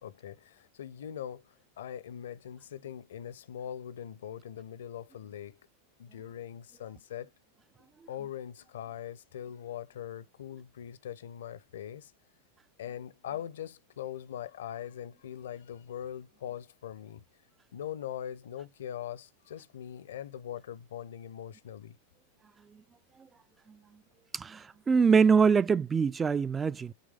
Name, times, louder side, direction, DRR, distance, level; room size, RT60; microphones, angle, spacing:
voice 1, 0.0-1.4 1.8-5.6 6.0-7.3 8.1-12.1 12.8-17.2 17.7-22.0, left 10 dB, 60° left, 0.6 m, -41 dB
voice 2, 24.3-26.9, right 5 dB, 15° right, 0.3 m, -24 dB
8.3 x 3.3 x 3.5 m
figure-of-eight pair, 90°, 0 cm